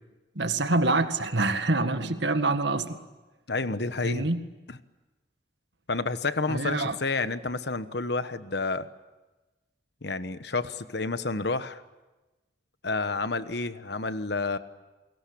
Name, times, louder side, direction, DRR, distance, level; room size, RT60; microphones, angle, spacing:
voice 1, 0.4-3.0 4.0-4.4 6.5-7.0, right 2 dB, 70° right, 8 dB, 1.9 m, -26 dB
voice 2, 3.5-4.3 4.7-4.8 5.9-8.9 10.0-11.8 12.8-14.6, left 3 dB, 60° left, 12 dB, 1.2 m, -30 dB
29.0 x 22.0 x 8.6 m, 1.1 s
head